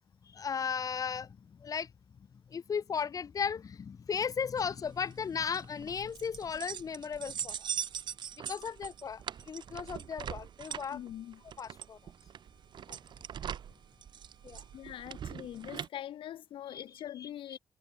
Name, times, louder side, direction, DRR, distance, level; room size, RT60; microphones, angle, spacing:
voice 1, 0.2-1.9 2.2-7.7 8.4-11.0 11.6-12.0 12.9-13.0 14.4-14.6 16.7-16.8 17.2-17.3, left 6 dB, 40° left, 5.6 m, -36 dB
sound 1, 4.6-15.9, right 9 dB, 60° right, 4.9 m, -42 dB
voice 2, 10.9-11.4 14.7-17.6, left 11 dB, 80° left, 1.8 m, -43 dB
cardioid pair, 140°, 9 cm